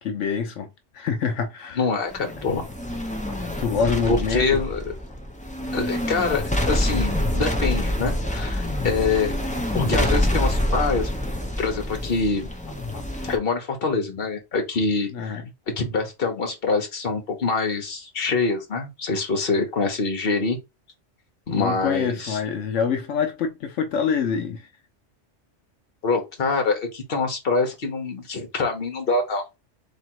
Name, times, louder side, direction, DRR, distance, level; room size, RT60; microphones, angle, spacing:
voice 1, 0.0-0.7 0.9-1.8 3.6-4.4 12.9-13.0 15.1-15.5 21.6-24.7, left 6 dB, 85° left, 1.1 m, -25 dB
voice 2, 1.8-2.6 4.1-4.9 5.7-9.4 9.7-11.1 11.6-12.5 13.2-15.4 15.8-20.6 21.5-22.4 26.0-29.6, left 4 dB, 55° left, 1.4 m, -25 dB
sound 1, 2.1-13.4, left 1 dB, 10° left, 0.6 m, -26 dB
3.7 x 2.9 x 4.5 m
omnidirectional pair, 1.2 m